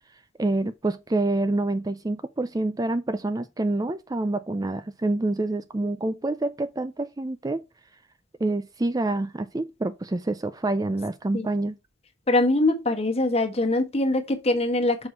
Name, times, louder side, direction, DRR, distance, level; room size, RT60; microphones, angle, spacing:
voice 1, 0.4-7.6 8.4-11.8, right 2 dB, 20° right, 0.4 m, -27 dB
voice 2, 12.3-15.1, left 2 dB, 30° left, 1.3 m, -23 dB
6.3 x 4.9 x 5.0 m
head